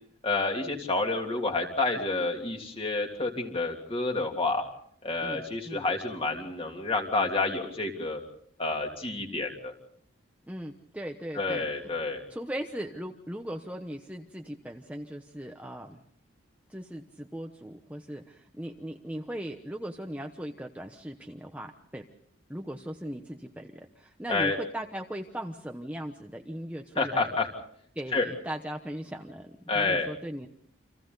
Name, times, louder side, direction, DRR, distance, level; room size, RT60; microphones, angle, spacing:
voice 1, 0.2-4.6 5.0-8.2 8.6-9.7 11.3-12.2 24.3-24.6 27.0-27.5 28.1-28.3 29.7-30.1, left 3 dB, 25° left, 2 dB, 3.0 m, -29 dB
voice 2, 5.2-5.8 10.5-11.7 12.3-16.0 16.7-22.1 22.5-27.4 28.0-30.5, equal, 5° right, 3 dB, 1.0 m, -38 dB
30.0 x 26.5 x 4.0 m, 0.65 s
head